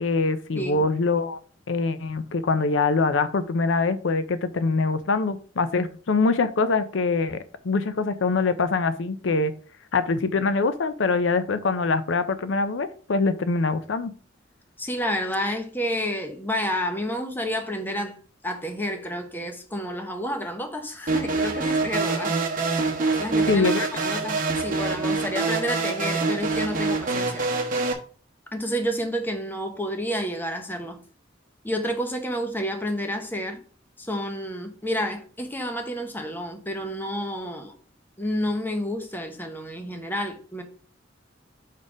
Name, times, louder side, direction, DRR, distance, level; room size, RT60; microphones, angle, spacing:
voice 1, 0.0-1.4 1.7-9.5 9.9-14.1 23.5-23.9, left 3 dB, 75° left, 12 dB, 0.5 m, -24 dB
voice 2, 0.5-0.9 14.8-22.4 23.2-23.7 24.0-27.5 28.5-31.0 31.6-33.6 34.0-37.7 38.2-40.6, equal, 10° left, 5 dB, 0.9 m, -30 dB
sound 1, 21.1-27.9, right 3 dB, 45° right, 1.2 m, -25 dB
5.4 x 4.1 x 4.9 m, 0.41 s
head